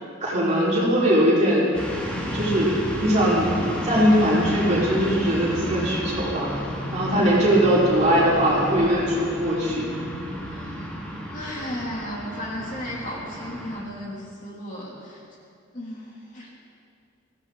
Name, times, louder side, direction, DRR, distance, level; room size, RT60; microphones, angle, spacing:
voice 1, 0.2-1.8 2.3-3.5 3.8-6.5 6.9-9.9, equal, 35° right, -7 dB, 4.9 m, -21 dB
sound 1, 1.7-13.8, equal, 5° left, 2.2 m, -32 dB
voice 2, 7.1-7.8 10.5-10.8 11.3-15.2 15.7-16.5, equal, 40° left, -4 dB, 3.3 m, -35 dB
22.5 x 15.5 x 4.1 m, 2.4 s
head